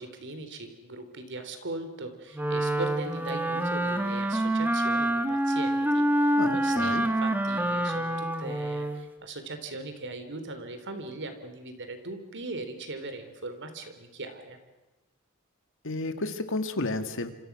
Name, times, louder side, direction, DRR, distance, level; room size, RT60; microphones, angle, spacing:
voice 1, 0.0-14.6, right 2 dB, 60° right, 8 dB, 3.6 m, -39 dB
Wind instrument woodwind instrument, 2.3-9.0, right 1 dB, 10° right, 1.6 m, -26 dB
voice 2, 6.4-7.0 15.8-17.3, left 2 dB, 65° left, 8 dB, 2.2 m, -31 dB
28.0 x 25.5 x 6.2 m, 1.1 s
head